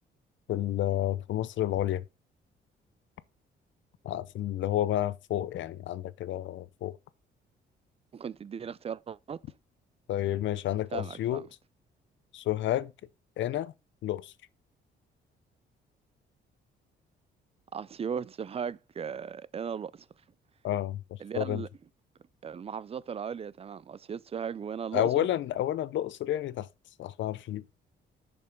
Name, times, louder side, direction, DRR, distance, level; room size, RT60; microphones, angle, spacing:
voice 1, 0.5-2.0 4.0-7.0 10.1-11.5 12.3-12.9 13.4-13.7 14.0-14.3 20.6-21.6 24.9-26.7 27.0-27.6, left 12 dB, 70° left, 0.6 m, -30 dB
voice 2, 8.1-9.4 10.9-11.5 17.7-20.1 21.2-21.7 22.4-25.3, right 7 dB, 30° right, 0.4 m, -37 dB
6.9 x 5.3 x 4.4 m
cardioid pair, 90°, 20 cm